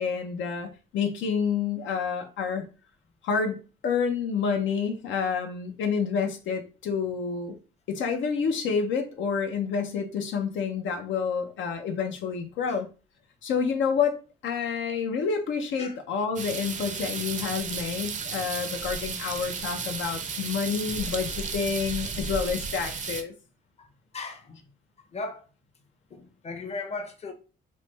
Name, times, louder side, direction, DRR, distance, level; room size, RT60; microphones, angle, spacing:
voice 1, 0.0-2.6 3.2-7.5 7.9-12.9 13.4-14.2 14.4-23.3, left 6 dB, 75° left, 0.5 m, -28 dB
sound 1, 16.4-23.2, right 5 dB, 40° right, 0.5 m, -34 dB
voice 2, 24.1-24.6 25.1-25.5 26.1-27.3, left 3 dB, 35° left, 0.7 m, -37 dB
3.1 x 2.0 x 3.1 m
cardioid pair, 90°, 20 cm